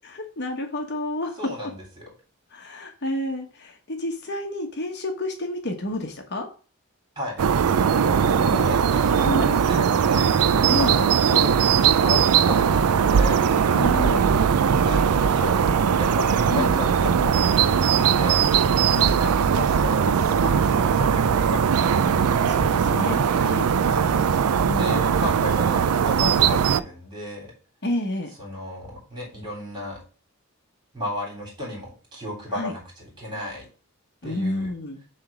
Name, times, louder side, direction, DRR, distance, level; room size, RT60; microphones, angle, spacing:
voice 1, 0.0-1.4 2.5-6.5 9.2-9.5 10.7-11.1 13.7-14.3 16.5-16.7 18.9-19.1 22.1-23.7 24.6-25.1 27.8-28.3 32.5-32.7 34.2-35.0, left 1 dB, 50° left, 4 dB, 1.1 m, -30 dB
voice 2, 1.4-2.1 7.2-7.4 8.0-13.4 14.6-18.4 19.0-21.7 23.8-24.1 24.7-27.5 28.4-30.0 30.9-33.7 34.2-34.7, left 1 dB, 20° right, -2 dB, 3.5 m, -34 dB
sound 1, 7.4-26.8, right 7 dB, 85° right, 0.4 m, -20 dB
7.3 x 3.4 x 6.0 m, 0.37 s
head